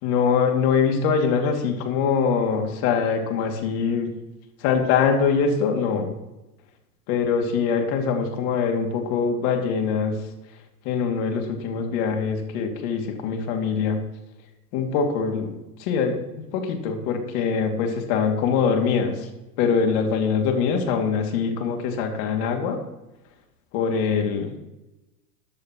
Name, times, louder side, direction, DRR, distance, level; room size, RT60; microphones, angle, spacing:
voice 1, 0.0-4.1 4.6-6.1 7.1-10.2 10.8-14.0 14.7-16.3 16.5-19.3 19.6-22.8 23.7-24.5, left 6 dB, 50° left, 3 dB, 2.7 m, -23 dB
14.5 x 10.5 x 3.1 m, 0.98 s
hypercardioid pair, 120°, 47 cm